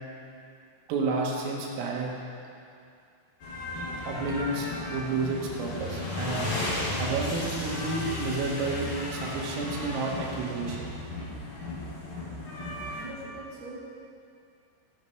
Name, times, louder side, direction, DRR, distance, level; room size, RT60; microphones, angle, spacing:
voice 1, 0.9-2.1 4.1-6.5 7.0-10.9, right 3 dB, 85° right, -2 dB, 4.3 m, -31 dB
sound 1, 3.4-13.0, left 2 dB, 50° left, 5.3 m, -34 dB
voice 2, 12.6-13.9, right 2 dB, 20° right, -8 dB, 2.8 m, -43 dB
15.0 x 13.5 x 4.7 m, 2.4 s
omnidirectional pair, 5.8 m